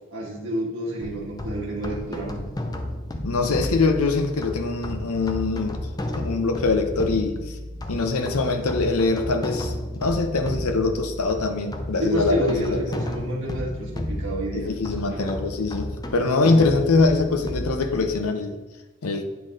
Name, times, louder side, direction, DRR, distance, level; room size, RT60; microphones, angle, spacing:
voice 1, 0.1-2.4 12.0-14.7 15.0-15.4, right 1 dB, 60° right, -4 dB, 1.8 m, -29 dB
sound 1, 1.0-18.2, left 1 dB, 20° left, 0.5 m, -32 dB
voice 2, 3.2-5.8 6.2-7.6 7.9-12.8 14.5-18.6 19.0-19.2, left 3 dB, 85° left, 6 dB, 0.8 m, -23 dB
9.5 x 3.9 x 3.8 m, 1.1 s
head